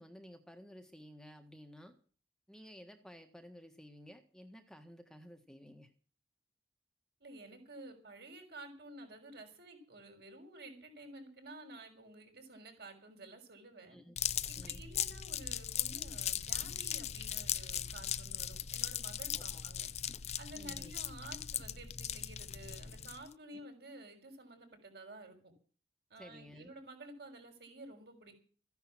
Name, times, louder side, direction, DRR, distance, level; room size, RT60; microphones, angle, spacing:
voice 1, 0.0-1.9 2.5-5.9 13.9-14.2 14.5-14.8 19.3-19.7 20.5-20.9 23.5-23.7 26.2-26.7, equal, 5° left, 5 dB, 1.5 m, -54 dB
voice 2, 7.2-14.0 14.5-19.9 20.4-25.4 26.1-28.4, right 2 dB, 60° right, 4 dB, 6.1 m, -52 dB
sound 1, 14.2-23.3, left 10 dB, 40° left, 0.6 m, -38 dB
15.0 x 10.5 x 7.5 m, 0.41 s
head